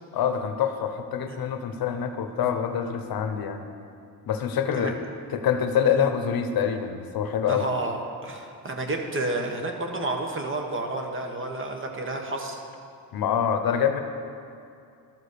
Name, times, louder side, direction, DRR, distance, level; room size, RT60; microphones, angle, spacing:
voice 1, 0.1-3.6 4.3-5.0 5.3-7.7 13.1-14.0, left 8 dB, 65° left, 7 dB, 0.8 m, -25 dB
voice 2, 7.5-12.6, right 2 dB, 30° right, 2 dB, 1.1 m, -31 dB
13.0 x 4.9 x 6.7 m, 2.5 s
cardioid pair, 135°, 39 cm